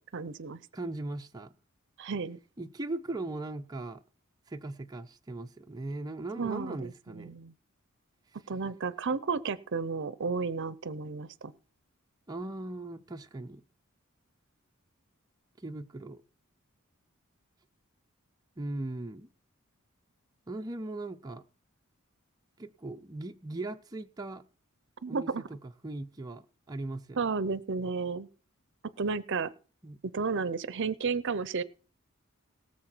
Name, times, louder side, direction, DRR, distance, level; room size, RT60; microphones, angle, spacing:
voice 1, 0.1-0.6 2.0-2.4 6.4-6.8 7.1-7.5 8.5-11.5 25.0-25.5 27.2-28.3 29.0-29.5 30.1-31.6, right 5 dB, 60° right, 17 dB, 0.6 m, -32 dB
voice 2, 0.7-1.5 2.6-4.0 4.5-7.4 12.3-13.6 15.6-16.2 18.6-19.3 20.5-21.4 22.6-24.4 25.1-27.3 29.8-30.0, right 2 dB, 20° right, 4 dB, 0.6 m, -39 dB
18.5 x 7.3 x 4.5 m, 0.39 s
head